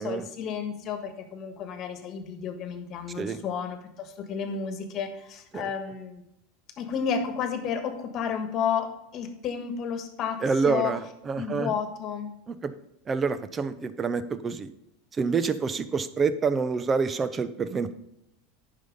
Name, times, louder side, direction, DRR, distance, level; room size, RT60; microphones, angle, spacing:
voice 1, 0.0-6.2 6.8-10.9 11.3-12.3, left 7 dB, 40° left, 8 dB, 1.5 m, -32 dB
voice 2, 10.4-11.7 12.5-12.7 13.1-14.7 15.2-17.9, right 5 dB, 20° right, 14 dB, 0.7 m, -27 dB
9.9 x 5.6 x 5.3 m, 0.83 s
supercardioid pair, 135°, 0 cm